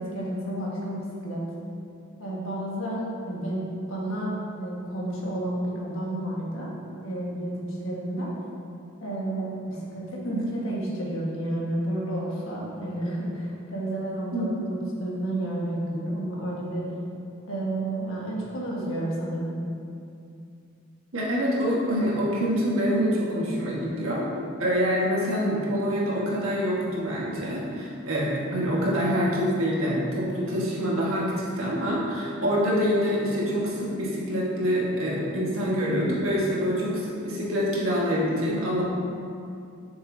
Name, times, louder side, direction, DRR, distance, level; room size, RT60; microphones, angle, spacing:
voice 1, 0.0-1.4 2.2-6.7 7.0-8.3 9.0-16.9 17.5-19.5, right 1 dB, 75° left, -5 dB, 1.5 m, -31 dB
voice 2, 14.3-14.6 21.1-24.3 24.6-38.8, equal, 75° right, -5 dB, 1.5 m, -26 dB
7.0 x 6.4 x 2.7 m, 2.5 s
head